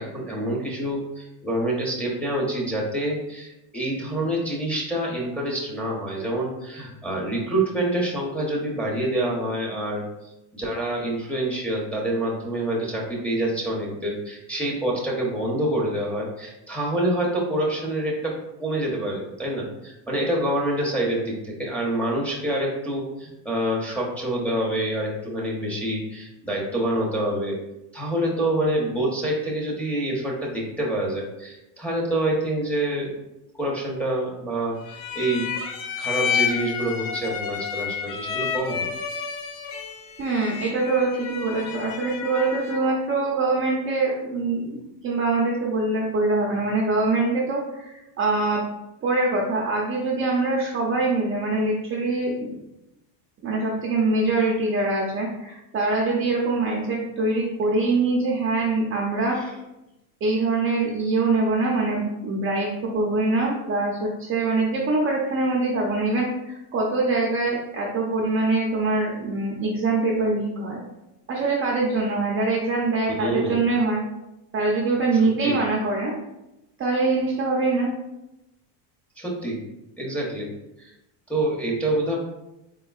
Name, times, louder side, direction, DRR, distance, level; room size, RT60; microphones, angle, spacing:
voice 1, 0.0-10.0 10.5-27.6 27.9-33.1 33.5-35.5 36.0-38.9 59.3-59.5 73.2-73.6 75.2-75.6 79.2-79.6 80.0-80.5 80.8-80.9 81.3-82.2, right 1 dB, 5° left, -3 dB, 0.8 m, -27 dB
sound 1, 34.8-43.0, left 7 dB, 65° left, 0.7 m, -30 dB
voice 2, 40.2-44.8 45.0-48.6 49.0-52.3 53.4-59.4 60.2-70.8 71.3-74.0 74.5-76.1 76.8-77.9, right 3 dB, 25° right, -2 dB, 0.5 m, -24 dB
4.0 x 3.6 x 2.3 m, 0.92 s
supercardioid pair, 120°, 48 cm